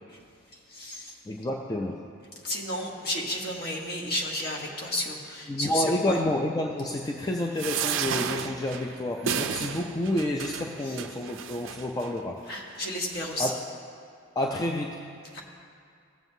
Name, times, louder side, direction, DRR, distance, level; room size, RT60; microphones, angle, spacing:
voice 1, 0.5-1.2 2.4-6.2 10.8-11.0 12.5-13.5 15.3-15.4, left 1 dB, 45° left, -1 dB, 1.1 m, -32 dB
voice 2, 1.3-2.2 5.5-12.5 13.4-13.6 14.4-15.1, left 1 dB, 15° left, 0 dB, 0.3 m, -29 dB
sound 1, 7.6-12.1 12.8-12.9 13.1-13.2, right 8 dB, 60° right, 0.4 m, -33 dB
16.0 x 7.5 x 2.7 m, 2.3 s
head